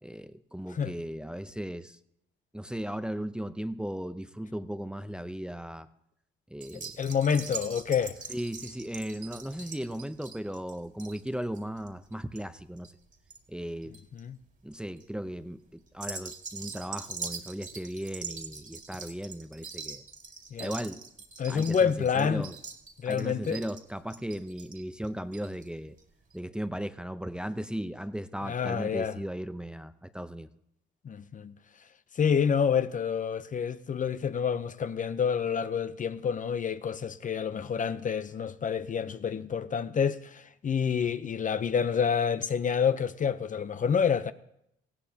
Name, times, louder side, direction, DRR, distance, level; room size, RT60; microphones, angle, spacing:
voice 1, 0.0-2.0 2.5-5.9 6.5-7.0 8.3-12.9 13.5-13.9 14.6-20.0 20.6-21.0 21.5-22.5 23.1-26.0 26.3-30.5, equal, 5° right, 0.6 m, -36 dB
sound 1, 6.6-13.4 13.7-14.2 14.7-15.0 15.9-25.7 26.0-26.1 26.3-26.4, right 5 dB, 40° right, 2.2 m, -43 dB
voice 2, 7.0-8.2 14.1-14.4 20.5-20.7 21.4-22.5 23.0-23.6 28.4-29.2 31.0-31.5 32.2-44.3, left 7 dB, 40° left, 0.7 m, -28 dB
18.5 x 16.0 x 2.8 m
cardioid pair, 90°, 20 cm